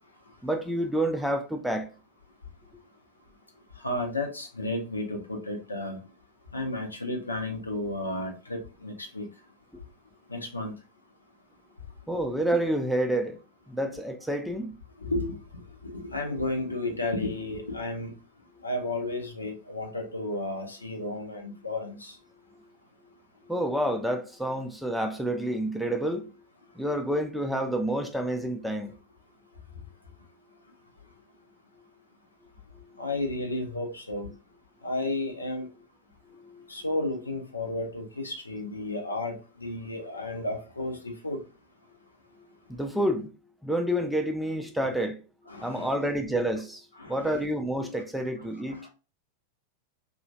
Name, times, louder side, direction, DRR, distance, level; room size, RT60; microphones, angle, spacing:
voice 1, 0.4-1.9 12.1-13.4 13.7-14.7 23.5-26.3 26.8-28.9 36.5-36.6 42.7-43.3 43.6-45.2 45.6-46.8 47.1-48.8, right 1 dB, ahead, 0.4 m, -28 dB
voice 2, 3.8-6.0 6.5-9.3 10.3-10.7 15.0-15.4 15.8-18.1 18.6-22.2 33.0-34.3 34.8-35.7 36.7-41.4 45.5-46.1 47.0-47.4, left 2 dB, 80° left, 0.6 m, -32 dB
2.9 x 2.3 x 2.6 m
figure-of-eight pair, 90°, 0 cm